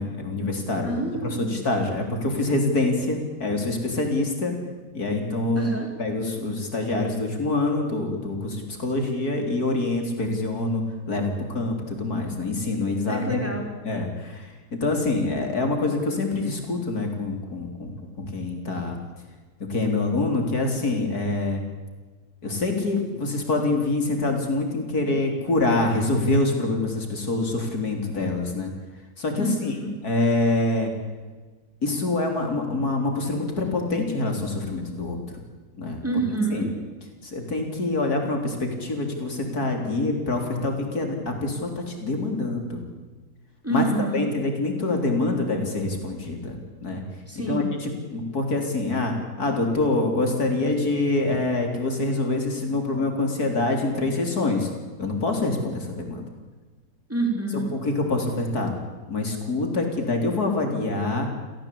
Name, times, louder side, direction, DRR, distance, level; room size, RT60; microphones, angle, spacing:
voice 1, 0.0-1.0 1.4-4.5 4.9-5.7 6.0-10.8 11.1-13.4 13.8-14.1 14.7-17.9 18.2-19.0 19.7-21.6 22.4-28.7 29.2-29.7 30.0-30.9 31.8-35.2 35.8-36.0 36.5-36.7 37.3-42.8 43.7-43.8 44.1-47.0 47.5-47.6 48.1-54.7 55.0-56.2 57.8-58.7 59.1-61.3, left 2 dB, 65° left, 3 dB, 4.4 m, -25 dB
voice 2, 0.8-1.5 5.6-5.9 13.1-13.7 29.4-29.9 36.0-36.7 43.6-44.3 47.3-47.7 57.1-57.7, right 2 dB, 10° right, 1 dB, 5.2 m, -27 dB
29.0 x 16.5 x 8.7 m, 1.3 s
omnidirectional pair, 1.7 m